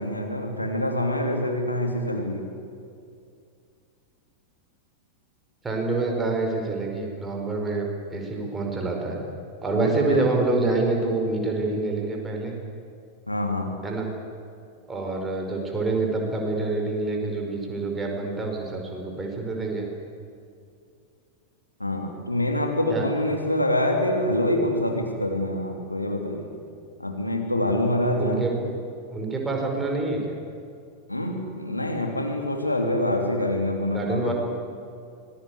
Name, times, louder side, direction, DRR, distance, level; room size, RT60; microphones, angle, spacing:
voice 1, 0.0-2.5 9.7-10.3 13.3-13.7 21.8-26.5 27.0-28.5 31.1-34.3, left 1 dB, 85° left, 3 dB, 3.0 m, -25 dB
voice 2, 5.6-9.2 9.6-12.5 13.8-14.1 14.9-19.9 22.9-23.1 28.2-28.6 29.1-30.3 33.9-34.3, right 3 dB, 15° right, 1 dB, 5.4 m, -27 dB
25.0 x 20.0 x 8.4 m, 2.4 s
figure-of-eight pair, 90°, 0 cm